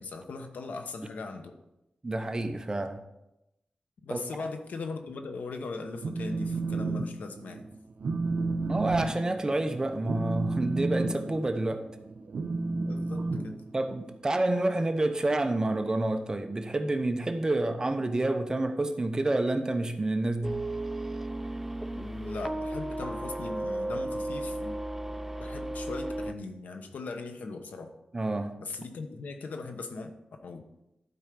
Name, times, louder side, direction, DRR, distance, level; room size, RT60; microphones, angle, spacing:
voice 1, 0.0-1.5 4.0-7.7 12.7-13.5 21.9-24.8 25.0-25.1 25.4-27.9 28.6-30.1 30.4-30.6, left 3 dB, 85° left, 6 dB, 1.0 m, -39 dB
voice 2, 2.0-3.0 4.1-4.2 8.7-11.8 13.7-20.6 28.1-28.5, right 2 dB, 25° right, 7 dB, 0.8 m, -28 dB
Telephone, 5.8-7.1 7.4-7.7 8.0-14.1, right 3 dB, 75° right, 0.7 m, -31 dB
sound 1, 20.4-26.3, right 1 dB, 10° right, 0.4 m, -34 dB
12.0 x 4.5 x 5.2 m, 0.89 s
wide cardioid pair, 95°, 3 cm